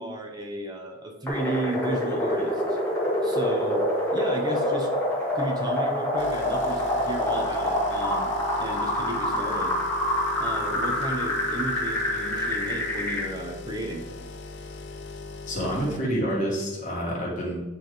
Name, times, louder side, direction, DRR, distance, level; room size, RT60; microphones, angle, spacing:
voice 1, 0.0-2.8 3.2-4.9 5.3-8.3 8.6-9.8 10.4-14.1, right 2 dB, 20° right, 2 dB, 0.6 m, -33 dB
sound 1, 1.3-13.3, left 1 dB, 10° left, 1.5 m, -26 dB
sound 2, 6.2-16.0, left 4 dB, 50° left, 0.6 m, -39 dB
voice 2, 15.5-17.6, equal, 35° left, -4 dB, 1.8 m, -28 dB
9.0 x 3.4 x 3.9 m, 1.0 s
head